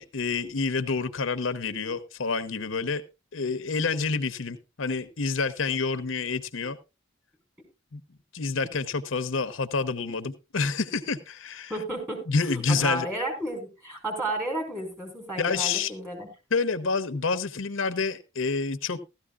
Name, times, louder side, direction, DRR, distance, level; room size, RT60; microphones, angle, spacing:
voice 1, 0.0-3.0 3.3-6.8 7.9-8.0 8.3-11.7 12.3-13.1 15.4-15.9 16.5-19.0, left 4 dB, 75° left, 12 dB, 0.8 m, -28 dB
voice 2, 11.7-12.3 12.5-16.3, right 1 dB, 10° right, 2 dB, 4.8 m, -32 dB
16.0 x 13.0 x 2.3 m, 0.26 s
head